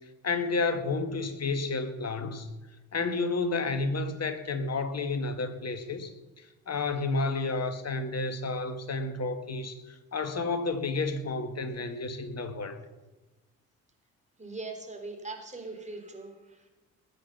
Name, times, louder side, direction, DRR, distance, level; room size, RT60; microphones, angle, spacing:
voice 1, 0.2-2.5 2.9-12.8, left 3 dB, 35° left, 8 dB, 2.1 m, -31 dB
voice 2, 14.4-16.7, right 3 dB, 15° right, 3 dB, 3.7 m, -41 dB
20.5 x 9.1 x 5.7 m, 1.1 s
hypercardioid pair, 50°, 41 cm